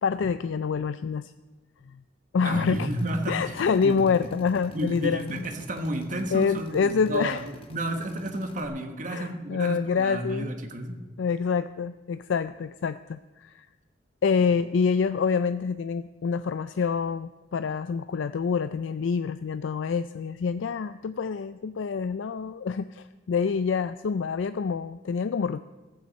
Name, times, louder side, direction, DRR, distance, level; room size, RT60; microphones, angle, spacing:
voice 1, 0.0-1.3 1.9-2.0 2.3-2.9 3.3-5.5 6.3-7.4 9.1-10.5 11.2-13.7 14.2-25.6, left 5 dB, 85° left, 13 dB, 0.4 m, -27 dB
voice 2, 2.4-4.0 4.7-11.0, right 1 dB, 45° right, 5 dB, 1.5 m, -32 dB
Drill, 2.7-8.7, left 1 dB, 30° left, 1.4 m, -48 dB
15.5 x 14.5 x 4.2 m, 1.2 s
head